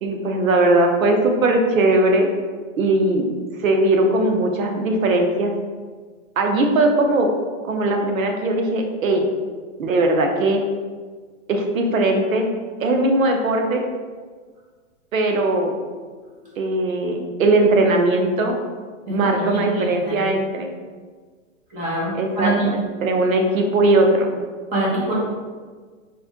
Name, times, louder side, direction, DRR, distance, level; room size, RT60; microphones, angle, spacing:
voice 1, 0.0-2.3 2.8-3.3 3.6-5.5 6.4-7.3 7.6-9.3 9.8-10.6 11.5-12.5 12.8-13.9 15.1-15.7 16.6-18.5 19.1-20.7 22.1-24.3, right 2 dB, 90° right, 3 dB, 0.8 m, -19 dB
voice 2, 19.1-20.3 21.7-22.7 24.7-25.1, right 1 dB, 20° right, -6 dB, 1.0 m, -25 dB
4.3 x 2.5 x 3.5 m, 1.5 s
hypercardioid pair, 145°, 39 cm